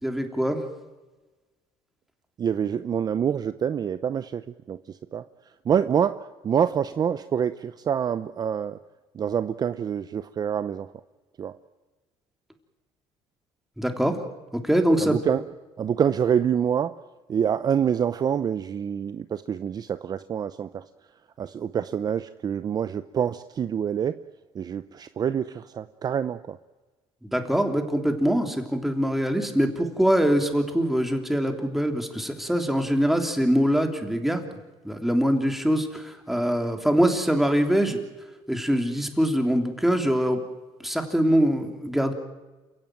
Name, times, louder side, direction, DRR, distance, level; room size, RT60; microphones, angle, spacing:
voice 1, 0.0-0.6 13.8-14.2 14.5-15.1 27.2-34.4 34.8-38.0 38.5-40.4 40.8-42.1, equal, ahead, 4 dB, 3.3 m, -23 dB
voice 2, 2.4-5.2 5.6-8.8 9.1-10.9 11.4-11.6 15.0-15.4 15.8-17.0 17.3-20.9 21.4-24.2 24.5-26.6, right 8 dB, 35° right, 12 dB, 0.7 m, -26 dB
28.5 x 16.5 x 9.1 m, 1.2 s
cardioid pair, 125°, 11 cm